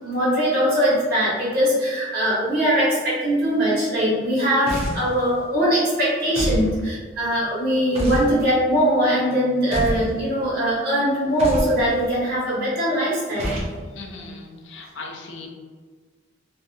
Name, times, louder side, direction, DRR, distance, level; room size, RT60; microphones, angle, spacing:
voice 1, 0.0-13.5, equal, 55° right, -8 dB, 1.2 m, -21 dB
sound 1, 4.7-5.1 6.3-6.7 7.9-8.3 9.7-10.1 11.4-11.8 13.4-13.8, equal, 35° right, 0.6 m, -26 dB
voice 2, 14.0-15.5, left 3 dB, 75° left, 1 dB, 0.5 m, -38 dB
2.6 x 2.5 x 2.4 m, 1.5 s
head